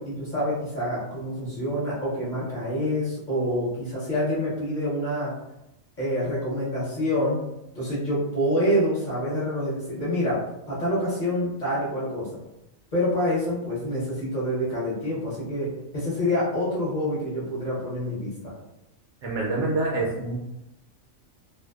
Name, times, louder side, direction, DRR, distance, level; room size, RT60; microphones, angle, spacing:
voice 1, 0.0-5.4 6.0-7.4 7.7-10.4 10.7-12.3 12.9-18.5, equal, 40° left, -9 dB, 0.8 m, -27 dB
voice 2, 19.2-20.4, right 2 dB, 65° right, -3 dB, 0.8 m, -26 dB
2.5 x 2.1 x 2.3 m, 0.91 s
omnidirectional pair, 1.4 m